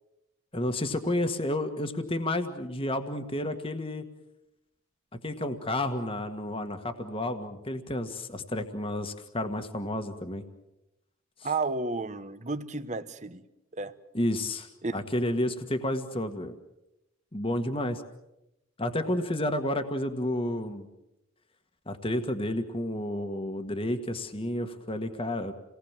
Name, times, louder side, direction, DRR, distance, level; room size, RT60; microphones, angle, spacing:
voice 1, 0.5-4.0 5.2-10.4 14.1-16.5 17.3-18.0 18.8-20.9 21.9-25.5, left 1 dB, 25° left, 7 dB, 1.6 m, -31 dB
voice 2, 11.4-13.5 13.7-13.9 14.8-15.0, right 3 dB, 35° right, 12 dB, 1.1 m, -32 dB
29.0 x 19.0 x 7.4 m, 0.92 s
head